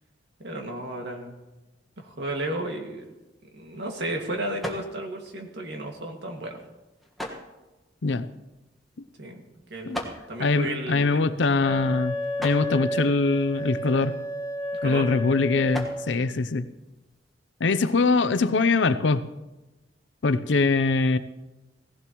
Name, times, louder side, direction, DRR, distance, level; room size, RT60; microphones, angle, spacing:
voice 1, 0.4-1.4 2.0-3.1 3.5-6.6 9.2-9.4 9.7-11.2 14.8-15.1, right 1 dB, 65° right, 2 dB, 2.1 m, -33 dB
sound 1, 3.0-17.3, equal, ahead, 1.5 m, -43 dB
voice 2, 10.4-12.2 12.4-14.2 14.8-16.7 17.6-19.2 20.2-21.2, left 3 dB, 75° left, 13 dB, 0.6 m, -23 dB
Wind instrument woodwind instrument, 11.6-16.1, left 1 dB, 20° left, 2.4 m, -31 dB
17.5 x 15.5 x 3.1 m, 1.1 s
head